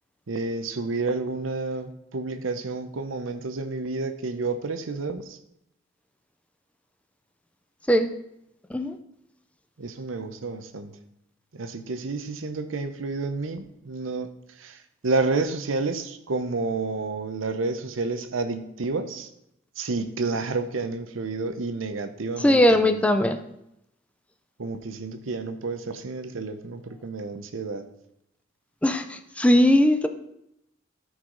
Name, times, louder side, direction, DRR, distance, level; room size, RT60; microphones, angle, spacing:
voice 1, 0.3-5.4 9.8-10.9 11.5-14.3 14.6-19.3 19.8-23.0 24.6-27.9, right 3 dB, 80° right, 9 dB, 0.7 m, -30 dB
voice 2, 22.4-23.4 28.8-30.1, left 1 dB, 5° left, 7 dB, 0.5 m, -19 dB
13.5 x 4.8 x 3.9 m, 0.81 s
head